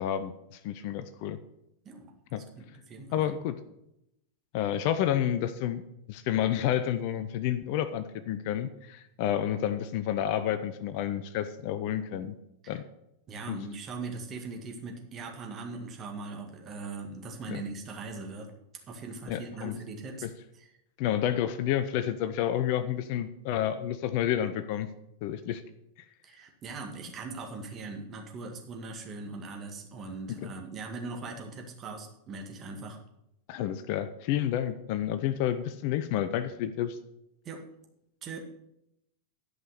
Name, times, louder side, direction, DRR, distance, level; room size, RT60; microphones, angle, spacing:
voice 1, 0.0-1.4 2.3-2.4 3.1-3.6 4.5-5.8 6.1-12.3 12.7-12.8 13.5-13.6 17.5-17.6 19.3-19.8 20.2-20.3 21.0-24.9 25.2-25.6 30.4-30.5 33.5-37.0, left 11 dB, 45° left, 12 dB, 0.6 m, -30 dB
voice 2, 2.4-3.3 12.7-12.8 13.3-18.5 18.9-20.3 20.5-20.7 26.2-33.0 37.5-37.6 38.2-38.4, right 3 dB, 30° right, 2 dB, 1.9 m, -40 dB
11.0 x 5.6 x 6.6 m, 0.82 s
figure-of-eight pair, 90°, 0 cm